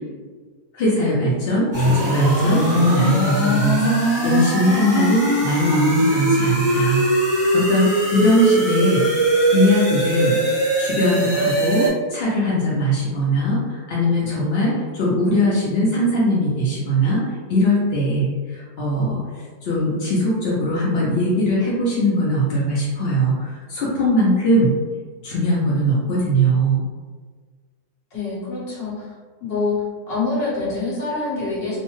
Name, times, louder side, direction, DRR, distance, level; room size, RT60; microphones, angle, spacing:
voice 1, 0.7-9.0 9.5-10.4 10.8-17.2 17.5-24.7 25.2-26.8, equal, 65° left, -7 dB, 0.6 m, -20 dB
sound 1, 1.7-11.9, right 1 dB, 15° right, 0.7 m, -20 dB
voice 2, 28.1-29.0 29.4-29.8 30.1-31.8, left 3 dB, 45° left, -7 dB, 1.0 m, -25 dB
2.7 x 2.1 x 3.0 m, 1.5 s
omnidirectional pair, 1.6 m